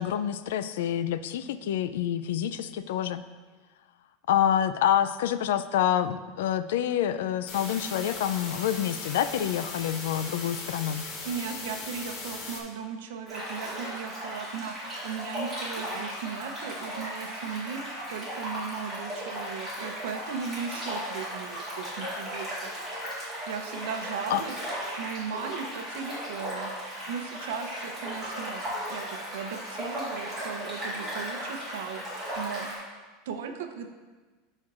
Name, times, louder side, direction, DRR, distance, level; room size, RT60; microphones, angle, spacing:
voice 1, 0.0-3.2 4.3-11.0 24.3-24.4, left 10 dB, 80° left, 12 dB, 0.3 m, -27 dB
sound 1, 7.5-12.6, left 3 dB, 30° left, 0.8 m, -38 dB
voice 2, 11.2-14.7 15.0-23.0 23.5-24.6 25.0-26.7 27.1-32.7 33.3-33.9, right 6 dB, 75° right, 6 dB, 0.7 m, -37 dB
sound 2, 13.3-32.7, equal, ahead, 2.2 m, -36 dB
11.5 x 4.4 x 2.5 m, 1.3 s
supercardioid pair, 175°, 0 cm